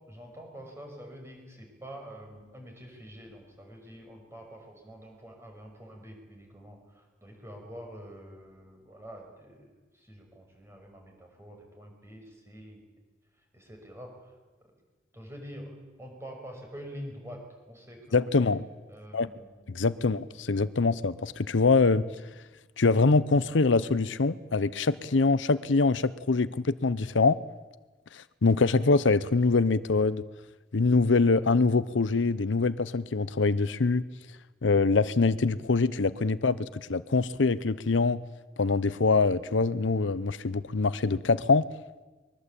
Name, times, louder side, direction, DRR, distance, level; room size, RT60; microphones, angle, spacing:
voice 1, 0.1-9.7 9.9-12.9 13.5-14.3 15.1-17.4 17.7-18.5 18.9-19.5 19.9-20.1, equal, 15° right, 2 dB, 6.0 m, -46 dB
voice 2, 18.1-18.6 19.1-19.3 19.7-22.0 22.8-27.4 28.1-30.2 30.7-34.0 34.6-38.2 38.6-41.7, left 3 dB, 85° left, 16 dB, 0.7 m, -24 dB
23.5 x 21.5 x 8.4 m, 1.3 s
head